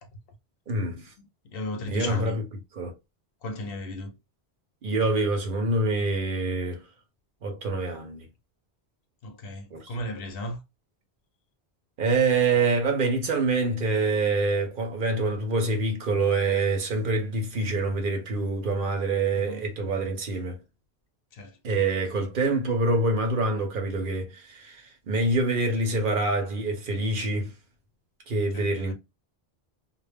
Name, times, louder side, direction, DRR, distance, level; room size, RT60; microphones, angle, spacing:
voice 1, 0.7-1.1 1.9-2.4 2.7-2.9 4.8-6.9 7.4-8.3 9.7-9.9 12.0-20.6 21.6-27.5 28.3-28.9, right 3 dB, 60° right, 0.8 m, -26 dB
voice 2, 1.5-2.4 3.4-4.1 9.2-10.6 19.3-19.6 21.3-21.5 28.5-28.9, left 1 dB, 65° left, 0.8 m, -35 dB
2.2 x 2.0 x 3.2 m
omnidirectional pair, 1.1 m